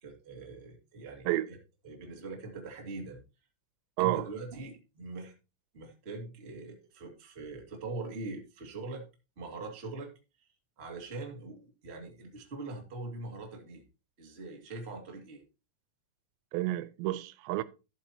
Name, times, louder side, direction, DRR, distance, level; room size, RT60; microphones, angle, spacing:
voice 1, 0.0-1.6 1.8-3.2 4.0-5.3 5.7-9.0 9.4-10.1 10.8-13.8 14.2-15.4, right 3 dB, 25° right, 1.5 m, -42 dB
voice 2, 16.5-17.6, right 17 dB, 90° right, 2.9 m, -30 dB
13.0 x 8.2 x 2.9 m
omnidirectional pair, 5.0 m